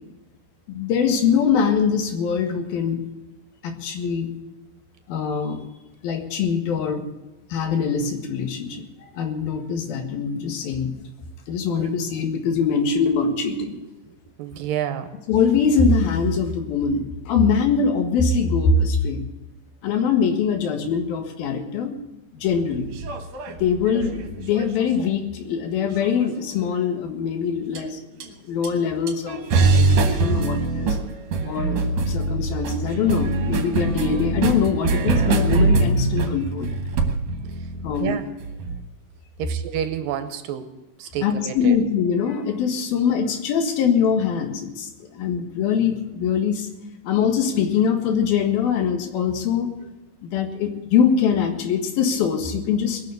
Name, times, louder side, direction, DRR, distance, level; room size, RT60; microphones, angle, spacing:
voice 1, 0.7-3.0 3.6-4.3 5.1-5.6 6.0-7.1 7.5-8.8 9.1-11.0 11.5-13.8 15.3-19.2 19.8-21.9 22.3-22.9 23.5-28.0 28.4-31.0 31.4-31.8 32.1-36.8 37.8-38.2 41.2-46.7 47.0-49.7 50.2-53.0, left 6 dB, 75° left, 5 dB, 3.5 m, -23 dB
voice 2, 14.1-15.2 37.4-38.4 39.4-41.8 49.8-49.9, right 10 dB, 75° right, 10 dB, 2.5 m, -30 dB
sound 1, 22.5-25.1 26.0-26.6 27.7-27.9 28.2-28.3 28.6-28.7 29.1-38.8, right 3 dB, 55° right, 2.3 m, -23 dB
20.5 x 7.0 x 8.2 m, 1.0 s
omnidirectional pair, 4.4 m